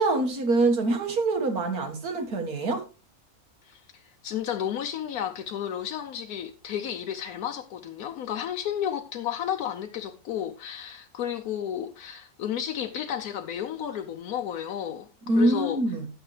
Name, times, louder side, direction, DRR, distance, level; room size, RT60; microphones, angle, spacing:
voice 1, 0.0-2.8 15.3-16.1, right 2 dB, 85° right, 2.3 m, -24 dB
voice 2, 3.6-15.1 15.4-15.8, left 9 dB, 75° left, 1.2 m, -32 dB
11.5 x 9.0 x 3.2 m
omnidirectional pair, 1.6 m